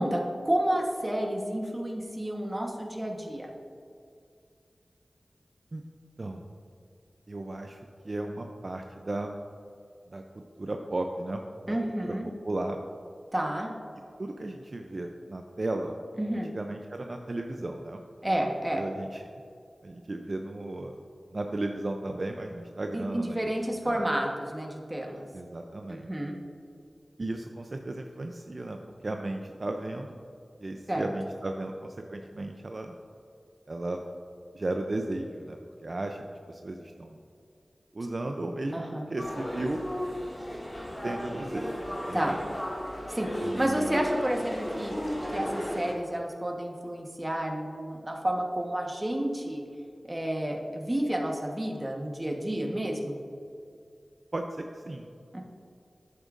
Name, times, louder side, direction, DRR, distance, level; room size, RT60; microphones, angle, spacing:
voice 1, 0.0-3.5 11.7-12.3 13.3-13.7 16.2-16.5 18.2-18.8 22.9-25.2 25.9-26.4 30.9-31.1 38.7-39.0 42.1-42.4 43.1-44.9 45.3-49.6 50.1-53.2 55.3-55.4, right 1 dB, 20° right, 1 dB, 1.2 m, -30 dB
voice 2, 7.3-9.3 10.1-10.2 10.6-12.1 12.4-12.8 14.2-16.0 16.5-18.0 18.7-19.2 19.8-21.0 21.3-23.5 23.9-24.0 25.3-26.1 27.2-28.8 29.0-30.2 30.6-32.9 33.7-34.0 34.5-37.2 37.9-39.8 41.0-42.4 43.4-44.0 54.3-55.1, right 2 dB, 50° right, 4 dB, 0.5 m, -35 dB
sound 1, 39.2-45.9, equal, 25° left, 2.1 m, -34 dB
11.0 x 8.1 x 2.6 m, 2.4 s
wide cardioid pair, 55°, 0 cm